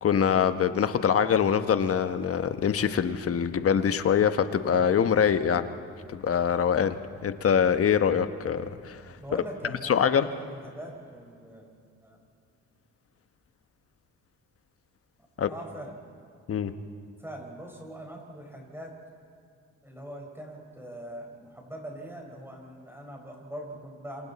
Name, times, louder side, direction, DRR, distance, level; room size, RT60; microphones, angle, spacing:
voice 1, 0.0-5.7 6.1-6.9 7.2-9.0 9.8-10.3 15.4-15.5 16.5-16.7, left 7 dB, 50° left, 9 dB, 1.2 m, -24 dB
voice 2, 9.2-11.6 12.0-12.2 15.5-16.1 17.2-19.0 19.8-24.3, right 1 dB, 10° right, 1 dB, 4.9 m, -42 dB
27.5 x 27.5 x 4.2 m, 2.4 s
cardioid pair, 90°, 30 cm